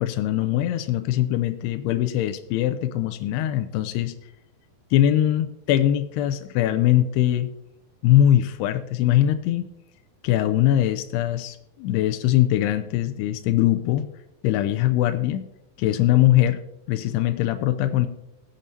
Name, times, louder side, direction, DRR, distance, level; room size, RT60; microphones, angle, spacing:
voice 1, 0.0-4.1 4.9-7.5 8.0-9.7 10.2-14.1 14.4-15.5 15.8-16.6 16.9-18.1, left 12 dB, 85° left, 9 dB, 2.6 m, -21 dB
20.0 x 8.6 x 2.7 m, 0.86 s
omnidirectional pair, 4.8 m